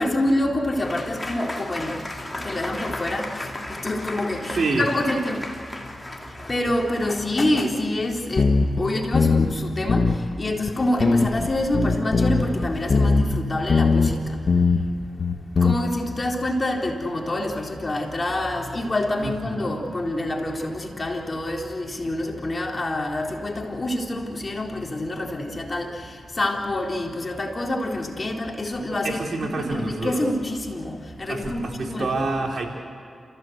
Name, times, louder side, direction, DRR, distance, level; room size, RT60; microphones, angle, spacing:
voice 1, 0.0-5.5 6.3-14.4 15.6-29.2 29.7-32.1, left 1 dB, 35° left, 1 dB, 3.8 m, -27 dB
Applause / Crowd, 0.8-7.6, left 1 dB, 20° left, 3.8 m, -36 dB
voice 2, 4.5-4.9 19.2-19.8 29.0-30.2 31.3-32.7, right 3 dB, 60° right, 0 dB, 4.2 m, -27 dB
sound 1, 8.4-8.8 9.1-9.6 9.9-10.2 10.7-10.8 11.0-13.4 13.7-14.2 14.5-14.9 15.2-15.7, left 4 dB, 55° left, 1.8 m, -19 dB
29.5 x 16.0 x 8.1 m, 2.4 s
cardioid pair, 55°, 0 cm